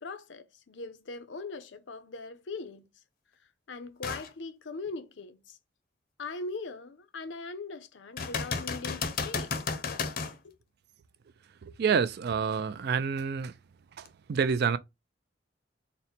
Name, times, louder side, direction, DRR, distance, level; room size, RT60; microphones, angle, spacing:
voice 1, 0.0-2.9 3.7-5.6 6.2-9.5 10.4-10.5, left 3 dB, 90° left, 0.6 m, -40 dB
sound 1, 4.0-4.3 4.9-5.0 8.2-10.4 14.1-14.2, left 5 dB, 55° left, 0.6 m, -33 dB
voice 2, 11.6-13.5 14.0-14.8, right 6 dB, 60° right, 0.4 m, -28 dB
4.0 x 2.1 x 4.2 m
head